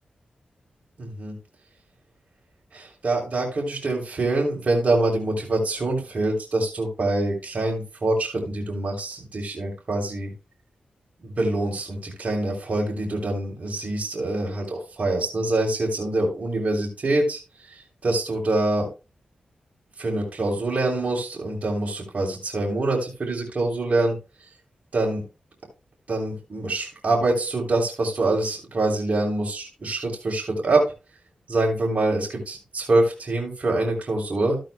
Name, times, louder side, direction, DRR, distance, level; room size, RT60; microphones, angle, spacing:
voice 1, 1.0-1.3 2.7-10.3 11.2-18.9 20.0-24.2 24.9-25.2 26.1-30.9 31.5-34.6, right 2 dB, 55° right, -2 dB, 3.3 m, -25 dB
13.5 x 8.9 x 2.2 m, 0.29 s
cardioid pair, 65°, 3 cm